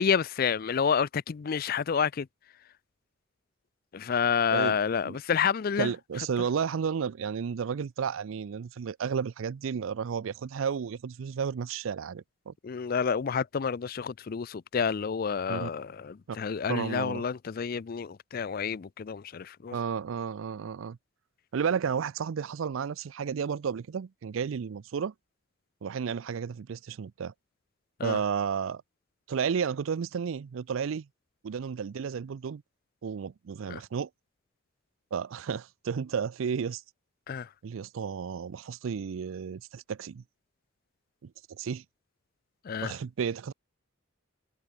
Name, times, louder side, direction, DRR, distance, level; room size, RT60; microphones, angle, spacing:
voice 1, 0.0-2.3 3.9-5.9 12.6-19.7 28.0-28.2 33.7-33.8 37.3-37.5 42.6-42.9, left 6 dB, 45° left, 0.4 m, -29 dB
voice 2, 5.8-12.5 15.5-15.7 16.7-17.2 19.7-21.0 21.5-25.1 25.8-27.3 28.0-28.8 29.3-31.1 31.4-32.6 33.0-34.1 35.1-36.8 37.6-40.2 41.2-41.3 41.6-41.8 42.8-43.5, right 6 dB, 75° right, 0.4 m, -32 dB
head